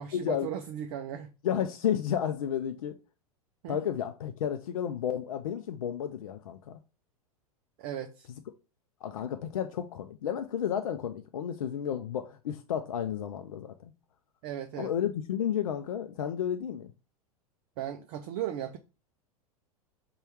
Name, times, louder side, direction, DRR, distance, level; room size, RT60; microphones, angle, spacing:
voice 1, 0.0-1.3 3.6-3.8 7.8-8.3 14.4-14.9 17.8-18.8, right 10 dB, 40° right, 0.4 m, -36 dB
voice 2, 1.4-3.0 3.7-6.8 9.0-13.9 14.8-16.9, left 9 dB, 65° left, 0.4 m, -32 dB
5.4 x 2.3 x 3.0 m
figure-of-eight pair, 90°, 19 cm